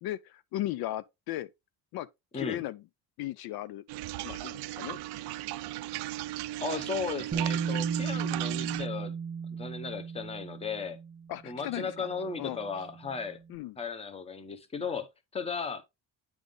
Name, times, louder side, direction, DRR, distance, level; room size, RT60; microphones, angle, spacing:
voice 1, 0.0-1.5 1.9-2.1 2.3-2.8 3.2-3.8 4.2-5.0 11.3-12.1 12.4-12.6 13.5-13.8, left 15 dB, 65° left, 0.5 m, -36 dB
sound 1, 3.9-8.9, right 15 dB, 75° right, 0.5 m, -36 dB
voice 2, 6.6-9.1 9.5-11.0 11.4-13.4 13.8-15.8, left 5 dB, 15° left, 0.8 m, -36 dB
Bass guitar, 7.3-13.4, right 6 dB, 20° right, 0.5 m, -36 dB
9.4 x 3.5 x 3.7 m
cardioid pair, 165°, 39 cm